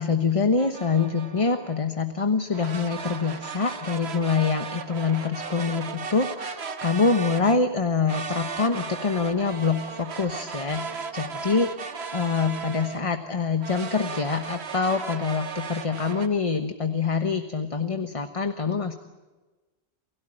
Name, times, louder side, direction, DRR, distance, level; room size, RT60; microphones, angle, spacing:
voice 1, 0.0-10.9 11.1-18.9, left 4 dB, 30° left, 8 dB, 1.2 m, -25 dB
sound 1, 0.6-1.8 2.5-7.6 8.1-13.1 13.6-16.3, right 5 dB, 80° right, 1.5 m, -36 dB
29.5 x 16.5 x 8.9 m, 1.2 s
omnidirectional pair, 1.1 m